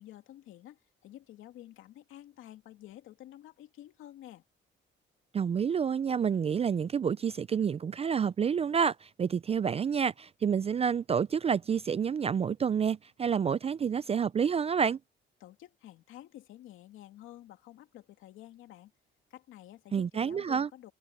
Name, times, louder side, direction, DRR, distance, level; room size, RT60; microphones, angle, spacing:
voice 1, 0.0-4.4 15.4-18.9 19.3-20.9, left 13 dB, 90° left, 2.5 m, -50 dB
voice 2, 5.3-15.0 19.9-20.7, right 7 dB, 30° right, 0.4 m, -29 dB
cardioid pair, 90°, 20 cm